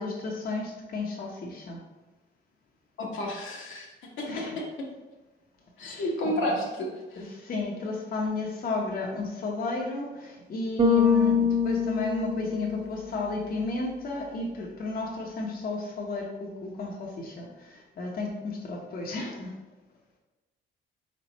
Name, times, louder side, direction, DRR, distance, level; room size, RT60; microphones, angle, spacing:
voice 1, 0.0-1.8 4.2-4.6 5.8-6.3 7.2-19.5, left 3 dB, 45° left, -1 dB, 0.8 m, -33 dB
voice 2, 3.0-4.6 5.8-7.3, left 1 dB, 80° left, -1 dB, 1.1 m, -31 dB
Bass guitar, 10.8-13.1, left 5 dB, 30° right, 0.7 m, -24 dB
3.8 x 3.3 x 4.0 m, 1.1 s
cardioid pair, 90°, 20 cm